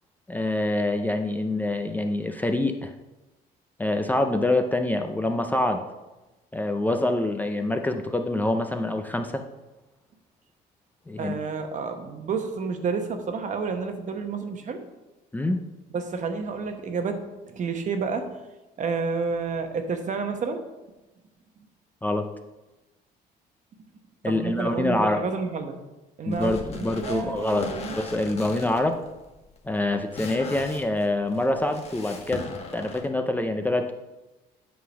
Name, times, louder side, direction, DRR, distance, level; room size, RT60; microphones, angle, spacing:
voice 1, 0.3-2.9 3.8-5.8 6.5-9.4 11.1-11.3 15.3-15.6 22.0-22.3 24.2-25.2 26.3-29.0 29.6-33.9, left 2 dB, 10° left, 5 dB, 0.5 m, -25 dB
voice 2, 11.2-14.8 15.9-18.3 18.8-20.6 24.2-25.8 26.2-28.2, right 5 dB, 45° right, 6 dB, 1.0 m, -30 dB
sound 1, 26.3-33.1, left 3 dB, 40° left, 1.3 m, -40 dB
8.5 x 3.8 x 6.1 m, 1.1 s
cardioid pair, 110°, 17 cm